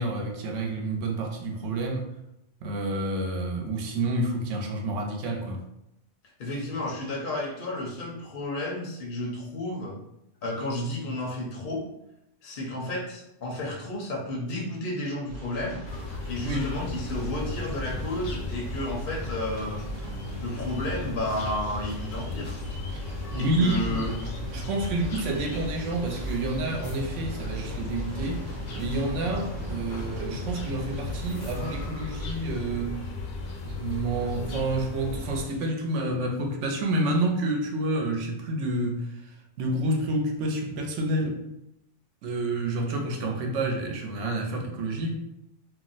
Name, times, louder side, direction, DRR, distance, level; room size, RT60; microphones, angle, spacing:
voice 1, 0.0-2.1 2.6-5.6 16.4-16.7 23.3-24.0 24.5-28.5 28.7-33.0 33.6-41.4 42.2-45.1, right 2 dB, 75° right, 2 dB, 0.9 m, -29 dB
voice 2, 6.4-10.0 10.4-11.8 12.4-15.9 16.3-19.8 20.4-22.6 23.3-24.2, left 1 dB, 55° left, -2 dB, 0.7 m, -32 dB
sound 1, 15.3-31.9, equal, 45° right, 0.7 m, -39 dB
sound 2, 15.9-35.5, left 2 dB, 80° left, 0.9 m, -36 dB
2.6 x 2.0 x 3.8 m, 0.84 s
omnidirectional pair, 1.3 m